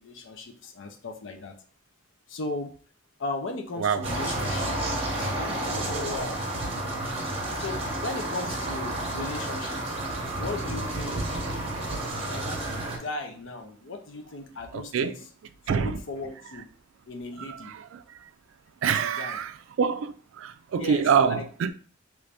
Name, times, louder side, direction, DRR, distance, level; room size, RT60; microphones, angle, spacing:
voice 1, 0.0-1.5 2.3-2.7 3.2-4.8 5.1-6.6 7.6-10.0 10.3-11.6 12.3-15.3 15.7-16.6 17.1-17.7 18.8-19.4 20.8-21.5, left 2 dB, 65° left, 0.6 m, -37 dB
sound 1, 4.0-13.0, right 1 dB, 30° right, 0.7 m, -31 dB
voice 2, 15.7-16.0 17.5-17.8 18.8-19.5 19.8-21.7, right 6 dB, 70° right, 0.3 m, -25 dB
3.1 x 2.6 x 3.3 m
head